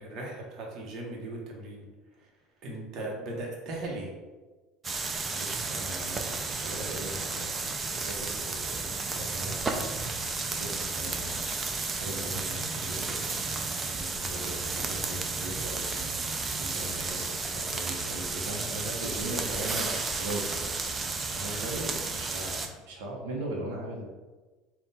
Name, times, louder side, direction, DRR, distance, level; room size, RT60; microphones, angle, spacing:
voice 1, 0.0-1.9 2.2-2.3 2.6-4.1 14.7-14.8, right 2 dB, 50° right, -2 dB, 1.0 m, -38 dB
sound 1, 4.8-22.7, right 3 dB, 20° right, 0.4 m, -33 dB
voice 2, 5.3-10.1 10.5-11.6 12.0-13.4 13.8-20.7 21.3-22.6 22.9-24.1, right 1 dB, 90° right, -2 dB, 0.8 m, -39 dB
3.7 x 2.3 x 4.0 m, 1.3 s
supercardioid pair, 125°, 0 cm